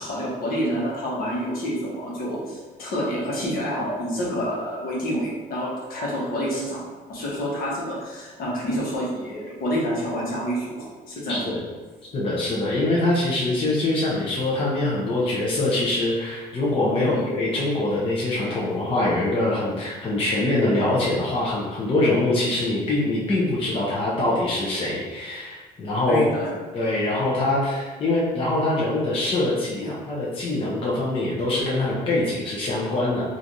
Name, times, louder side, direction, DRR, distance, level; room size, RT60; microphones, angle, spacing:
voice 1, 0.0-6.8 7.1-11.4 17.0-17.3 26.1-26.5 29.8-29.9, equal, 60° left, -4 dB, 1.0 m, -28 dB
voice 2, 11.3-11.6 12.1-26.2 26.7-33.4, left 2 dB, 35° left, -6 dB, 0.7 m, -24 dB
3.1 x 2.5 x 2.6 m, 1.3 s
cardioid pair, 110°, 17 cm